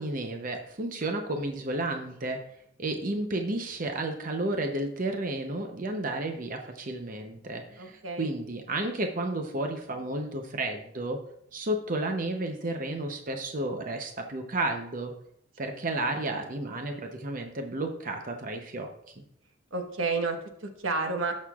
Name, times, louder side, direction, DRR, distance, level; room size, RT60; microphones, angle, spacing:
voice 1, 0.0-2.4 2.8-11.2 11.5-15.1 15.6-18.9, right 2 dB, 40° right, 4 dB, 0.7 m, -32 dB
voice 2, 7.8-8.3 15.6-15.7 19.7-21.3, right 3 dB, 85° right, 4 dB, 1.2 m, -31 dB
17.5 x 6.4 x 2.4 m, 0.74 s
head